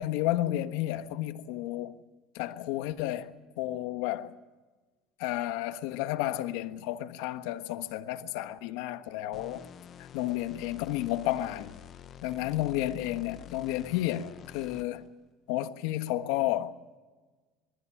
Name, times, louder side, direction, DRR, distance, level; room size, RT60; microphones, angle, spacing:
voice 1, 0.0-1.9 2.3-4.3 5.2-9.7 10.0-11.7 12.2-15.0 15.5-16.7, left 14 dB, 75° left, 1.3 m, -32 dB
sound 1, 9.3-15.1, left 9 dB, 30° left, 0.7 m, -48 dB
22.5 x 14.5 x 9.9 m
cardioid pair, 175°, 0 cm